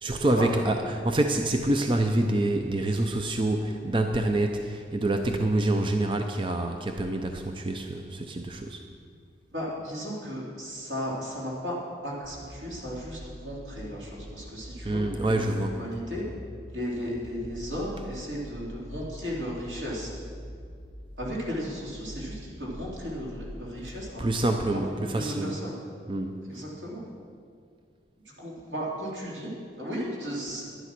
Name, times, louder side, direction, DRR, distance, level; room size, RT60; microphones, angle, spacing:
voice 1, 0.0-8.8 14.8-15.8 24.2-25.6 26.1-26.6, right 1 dB, 30° right, 4 dB, 0.6 m, -26 dB
voice 2, 9.5-11.7 12.0-16.2 16.7-20.1 21.2-24.2 25.1-25.7 26.5-27.0 28.4-30.7, equal, 85° right, -5 dB, 3.3 m, -35 dB
sound 1, 12.2-24.2, equal, 20° left, 1.8 m, -44 dB
11.0 x 11.0 x 6.0 m, 2.2 s
head